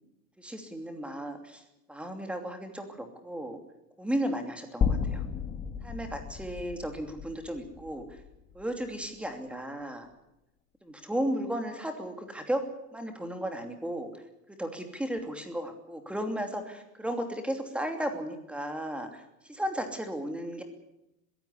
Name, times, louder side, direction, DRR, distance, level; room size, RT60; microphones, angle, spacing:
voice 1, 0.4-1.6 1.9-3.6 4.0-5.3 5.8-8.0 8.5-10.1 10.8-12.6 12.9-14.2 14.6-20.6, right 1 dB, 5° right, 5 dB, 2.8 m, -34 dB
sound 1, 4.8-9.0, left 6 dB, 15° left, 1.8 m, -33 dB
21.0 x 16.0 x 9.8 m, 0.87 s
supercardioid pair, 150°, 44 cm